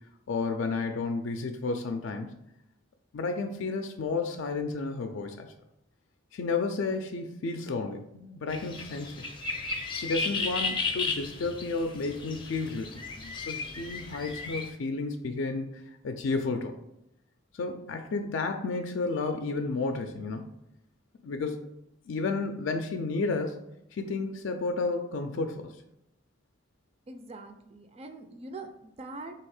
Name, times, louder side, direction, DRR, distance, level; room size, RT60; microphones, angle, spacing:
voice 1, 0.3-2.3 3.1-5.5 6.3-9.3 10.0-16.7 17.5-20.5 21.2-21.7 22.1-23.6 23.9-25.7, left 3 dB, 80° left, 5 dB, 0.4 m, -32 dB
sound 1, 8.5-14.7, left 4 dB, 25° left, 0.5 m, -34 dB
voice 2, 27.1-29.3, right 2 dB, 30° right, 6 dB, 0.4 m, -43 dB
3.5 x 2.9 x 4.7 m, 0.83 s
head